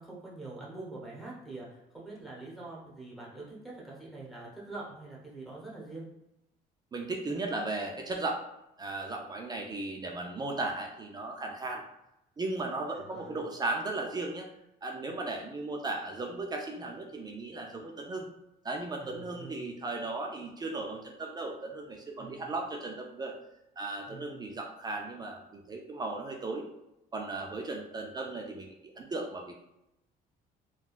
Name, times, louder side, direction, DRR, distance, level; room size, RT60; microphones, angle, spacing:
voice 1, 0.0-6.1 13.0-13.4 19.0-19.6 22.2-22.5 24.1-24.4, right 2 dB, ahead, -6 dB, 1.1 m, -45 dB
voice 2, 6.9-8.4 8.8-11.8 12.4-14.5 14.8-18.3 18.6-23.4 23.8-26.7 27.1-29.5, right 2 dB, 25° right, 1 dB, 0.4 m, -36 dB
3.5 x 2.3 x 2.4 m, 0.86 s
cardioid pair, 110°, 17 cm